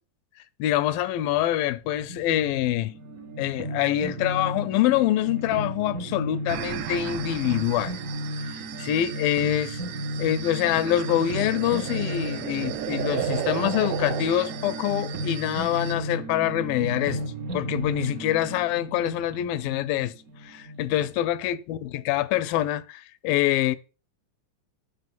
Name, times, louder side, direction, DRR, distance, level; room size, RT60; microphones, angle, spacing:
voice 1, 0.6-2.9 3.4-8.0 8.4-9.8 10.2-17.2 17.5-20.1 20.4-23.8, left 13 dB, 85° left, 2.4 m, -25 dB
sound 1, 2.0-21.1, right 1 dB, 60° right, 0.9 m, -34 dB
sound 2, 6.5-15.9, right 13 dB, 80° right, 2.4 m, -35 dB
9.5 x 6.2 x 7.5 m
omnidirectional pair, 4.1 m